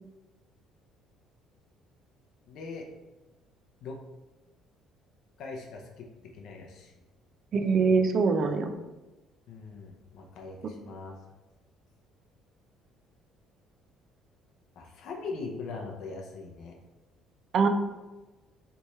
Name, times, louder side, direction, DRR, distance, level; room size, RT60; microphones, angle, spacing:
voice 1, 2.5-2.9 3.8-4.0 5.4-6.9 8.3-8.6 9.5-11.1 14.7-16.7, left 4 dB, 50° left, 0 dB, 0.6 m, -41 dB
voice 2, 7.5-8.7 17.5-17.7, right 5 dB, 35° right, 7 dB, 0.4 m, -23 dB
3.4 x 3.1 x 4.1 m, 1.1 s
cardioid pair, 170°, 0 cm